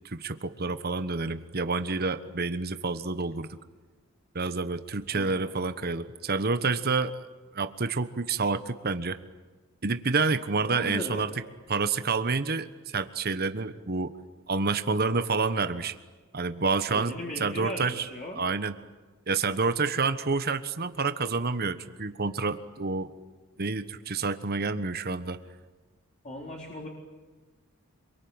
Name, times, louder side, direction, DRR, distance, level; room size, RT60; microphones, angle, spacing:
voice 1, 0.0-3.6 4.3-7.2 7.5-9.2 9.8-11.3 11.7-14.1 14.5-15.9 16.3-17.1 17.4-18.0 18.4-18.7 19.3-23.1 23.6-25.4, right 4 dB, 45° right, 11 dB, 1.2 m, -28 dB
voice 2, 5.1-5.5 10.7-11.4 16.9-18.4 26.2-26.9, left 1 dB, 35° left, -2 dB, 4.1 m, -37 dB
26.5 x 23.5 x 8.9 m, 1.3 s
head